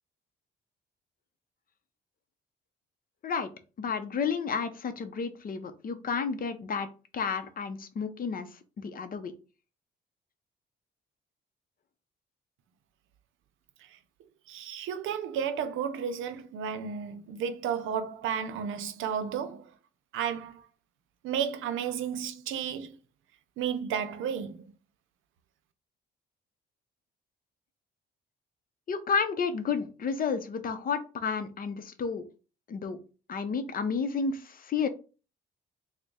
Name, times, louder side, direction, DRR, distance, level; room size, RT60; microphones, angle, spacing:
voice 1, 3.8-6.9 7.1-8.5 8.8-9.3 28.9-32.2 32.7-33.0 33.3-34.9, left 5 dB, 45° left, 0.6 m, -31 dB
voice 2, 14.5-19.6 20.1-20.6 21.2-22.9 23.6-24.7, right 8 dB, 85° right, 0.6 m, -32 dB
3.9 x 2.1 x 3.6 m
cardioid pair, 90°, 20 cm